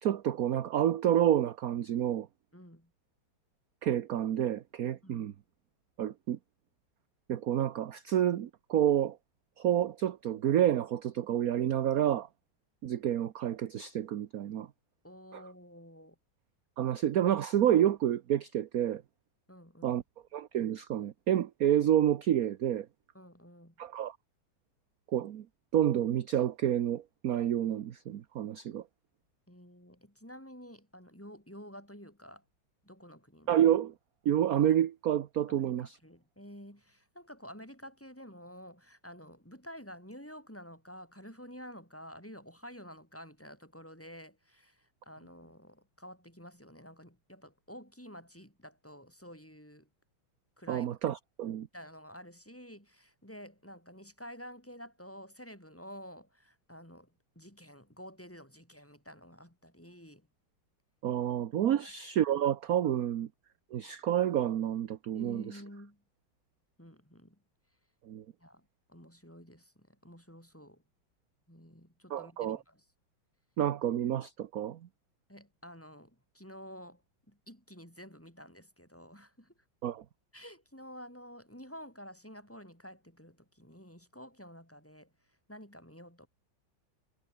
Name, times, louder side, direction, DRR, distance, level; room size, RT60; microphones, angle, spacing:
voice 1, 0.0-2.3 3.8-5.3 6.0-6.4 7.3-9.2 9.6-12.3 12.8-14.7 15.3-15.4 16.8-19.0 19.8-20.0 20.3-22.9 23.8-24.2 25.1-25.4 25.7-28.8 33.5-33.9 34.2-36.0 50.7-51.7 61.0-63.3 63.7-65.6 68.1-68.2 72.1-72.6 73.6-74.8 79.8-80.0, right 11 dB, 55° right, 1.1 m, -29 dB
voice 2, 2.5-2.9 5.0-5.3 15.0-16.1 19.5-20.0 23.1-23.7 29.5-32.4 32.8-33.6 35.5-49.9 50.6-50.9 51.7-60.3 61.8-61.9 65.1-66.0 66.8-67.4 68.4-70.8 71.5-72.8 75.3-77.0 77.3-79.5 80.3-85.1 85.5-86.3, equal, 5° left, 6.6 m, -50 dB
omnidirectional pair, 2.2 m